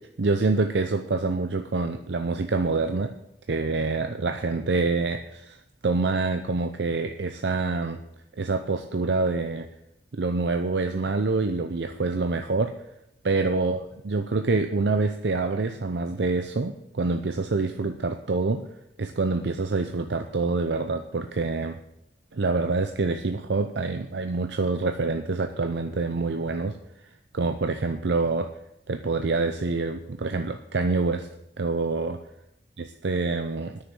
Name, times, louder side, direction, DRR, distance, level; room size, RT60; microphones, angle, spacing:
voice 1, 0.2-3.1 3.5-5.6 5.8-8.0 8.4-9.7 10.1-12.7 13.2-18.7 19.0-21.8 22.3-26.8 27.3-28.5 28.9-31.3 31.6-32.2 32.8-33.8, right 3 dB, 75° right, 7 dB, 0.7 m, -26 dB
9.6 x 6.7 x 8.5 m, 0.84 s
head